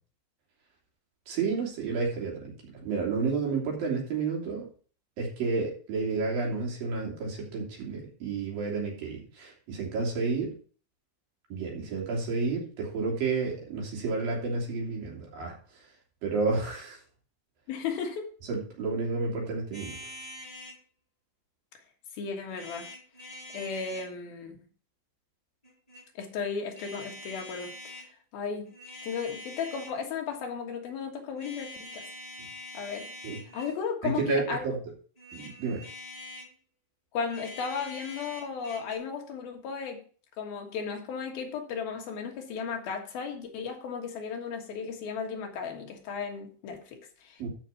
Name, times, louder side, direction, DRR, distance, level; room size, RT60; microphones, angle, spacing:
voice 1, 1.3-4.7 5.2-10.5 11.5-15.5 16.2-17.0 18.5-20.0 33.2-33.4 34.0-34.8 35.3-35.8 47.4-47.5, right 4 dB, 70° right, 4.8 m, -31 dB
voice 2, 17.7-18.3 22.1-22.9 23.5-24.6 26.2-28.1 28.3-28.7 29.0-32.1 32.7-33.1 33.5-34.7 37.1-40.0 40.4-47.5, left 6 dB, 80° left, 3.4 m, -35 dB
sound 1, 19.7-20.8 22.5-24.1 25.6-26.1 26.7-28.1 28.7-30.0 31.4-33.8 35.2-36.5 37.2-39.0, left 1 dB, 10° left, 3.4 m, -45 dB
13.0 x 5.8 x 4.1 m
omnidirectional pair, 4.3 m